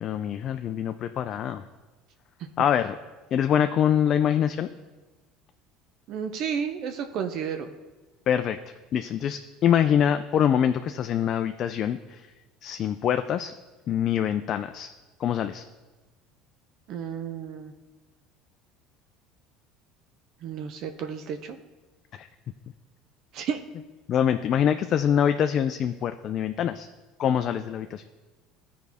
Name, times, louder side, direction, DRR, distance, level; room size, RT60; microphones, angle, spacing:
voice 1, 0.0-1.6 2.6-3.0 3.3-4.7 8.3-8.6 8.9-12.3 12.6-13.5 13.9-14.9 15.2-15.6 22.2-22.3 24.1-26.9 27.2-28.0, left 9 dB, 50° left, 8 dB, 0.3 m, -24 dB
voice 2, 6.1-7.7 16.9-17.7 20.4-21.6 23.3-23.6, right 7 dB, 60° right, 6 dB, 0.5 m, -32 dB
13.5 x 4.7 x 3.4 m, 1.2 s
supercardioid pair, 105°, 0 cm